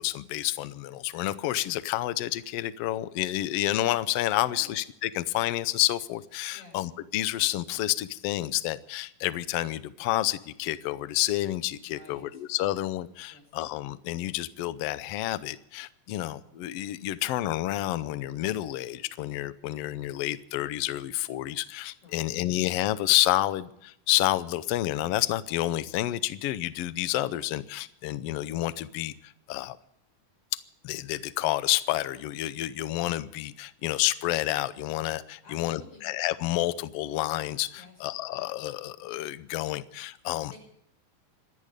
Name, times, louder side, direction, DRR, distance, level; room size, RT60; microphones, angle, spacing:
voice 1, 0.0-29.1 29.5-29.8 30.8-40.5, left 15 dB, 90° left, 15 dB, 1.3 m, -29 dB
voice 2, 4.4-4.8 6.5-6.8 11.8-12.4 13.3-13.4 22.0-22.4 35.4-36.1 37.7-38.0 40.4-40.6, left 2 dB, 45° left, 2 dB, 7.4 m, -51 dB
26.0 x 10.5 x 5.1 m, 0.74 s
omnidirectional pair, 3.7 m